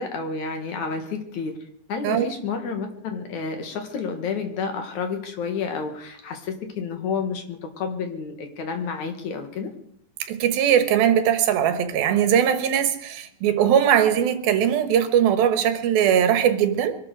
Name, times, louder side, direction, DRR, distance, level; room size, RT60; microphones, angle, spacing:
voice 1, 0.0-1.6 1.9-9.7, left 5 dB, 60° left, 2.8 m, -30 dB
voice 2, 10.3-17.0, right 9 dB, 75° right, 3.0 m, -20 dB
23.5 x 12.0 x 4.9 m
omnidirectional pair, 4.3 m